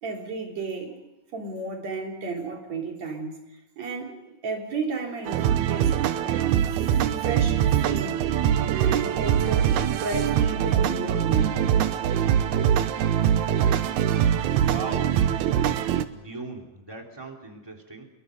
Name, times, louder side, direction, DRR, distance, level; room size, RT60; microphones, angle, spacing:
voice 1, 0.0-3.4 3.8-5.9 6.2-8.2 8.7-11.6, right 3 dB, 60° right, 4.8 m, -33 dB
sound 1, 5.3-16.0, right 9 dB, 75° right, 2.3 m, -23 dB
voice 2, 14.6-15.1 16.1-18.0, right 3 dB, 10° right, 3.3 m, -38 dB
27.0 x 22.5 x 5.3 m
omnidirectional pair, 3.4 m